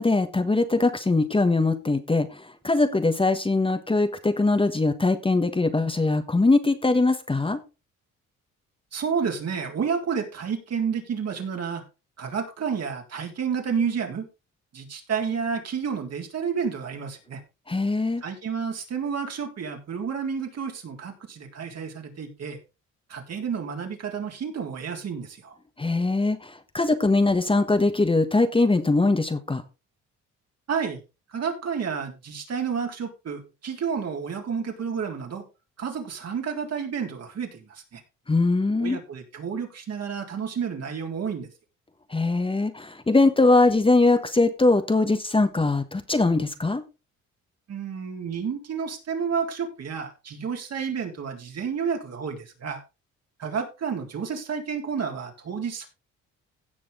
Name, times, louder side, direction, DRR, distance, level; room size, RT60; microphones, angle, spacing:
voice 1, 0.0-7.6 17.7-18.2 25.8-29.6 38.3-39.0 42.1-46.8, left 3 dB, 20° left, 9 dB, 1.3 m, -22 dB
voice 2, 8.9-11.8 12.2-14.3 14.7-17.4 18.2-22.6 23.1-25.5 30.7-31.0 31.3-35.4 35.8-38.0 38.8-41.5 47.7-52.8 53.4-55.9, right 6 dB, 55° right, 3 dB, 3.7 m, -30 dB
16.5 x 6.2 x 3.7 m, 0.29 s
cardioid pair, 90°, 30 cm